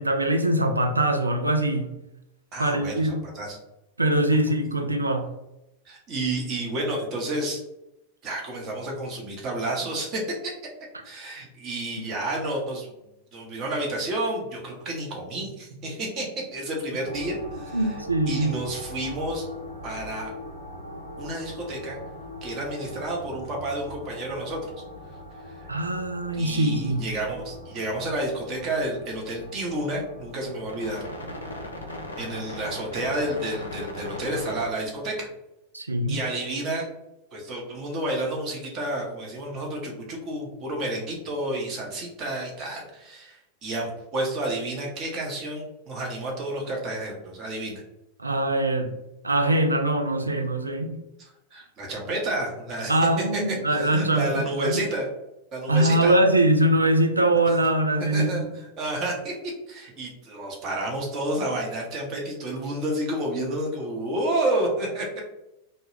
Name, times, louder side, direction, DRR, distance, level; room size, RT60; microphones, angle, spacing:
voice 1, 0.0-1.9 2.6-3.2 4.0-5.3 17.7-18.6 25.7-27.0 35.7-36.2 48.2-48.9 49.2-51.0 52.9-54.3 54.6-54.8 55.7-58.4, right 1 dB, 80° right, 5 dB, 0.3 m, -22 dB
voice 2, 2.5-3.6 5.9-7.6 8.2-10.5 11.0-12.9 13.3-17.8 18.3-19.5 19.8-20.3 21.2-22.0 22.4-24.7 25.4-25.6 26.3-31.0 32.2-35.3 36.1-36.9 37.3-47.8 51.2-55.1 55.5-56.2 57.4-57.5 58.0-59.4 59.7-65.2, right 1 dB, 35° right, -1 dB, 0.7 m, -30 dB
sound 1, 17.0-35.2, left 1 dB, 75° left, 0.4 m, -40 dB
2.2 x 2.0 x 3.0 m, 0.90 s
figure-of-eight pair, 90°, 0 cm